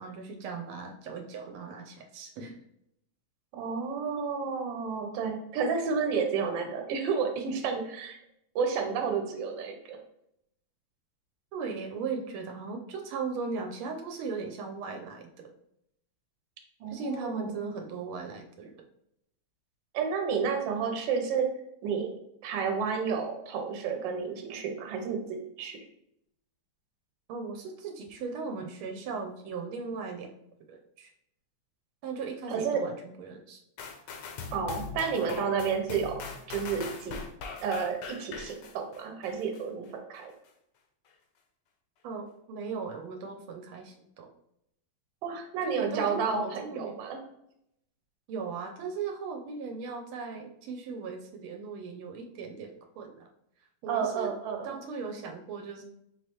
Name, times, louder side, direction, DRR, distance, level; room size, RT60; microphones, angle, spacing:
voice 1, 0.0-2.6 11.5-15.5 16.9-18.7 27.3-30.3 30.7-31.1 32.0-33.6 42.0-44.3 45.6-47.0 48.3-53.3 53.8-54.3 54.6-55.8, right 4 dB, 85° right, 3 dB, 1.4 m, -38 dB
voice 2, 3.5-8.2 8.5-10.0 16.8-17.5 19.9-21.5 21.8-22.1 22.4-25.8 32.5-32.8 34.5-36.2 36.5-37.2 37.6-40.3 45.2-47.2 53.9-54.8, right 6 dB, 70° right, 4 dB, 1.3 m, -31 dB
sound 1, 33.8-39.6 40.1-40.2, left 5 dB, 70° left, 1.1 m, -41 dB
4.9 x 3.1 x 2.9 m, 0.76 s
omnidirectional pair, 2.3 m